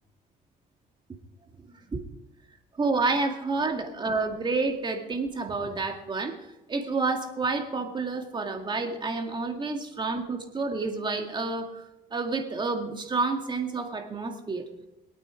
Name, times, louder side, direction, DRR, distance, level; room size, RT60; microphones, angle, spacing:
voice 1, 1.7-2.0 2.8-6.4 6.7-11.7 12.1-14.6, right 3 dB, 25° right, 4 dB, 2.1 m, -29 dB
22.0 x 9.1 x 4.8 m, 0.96 s
cardioid pair, 110°, 17 cm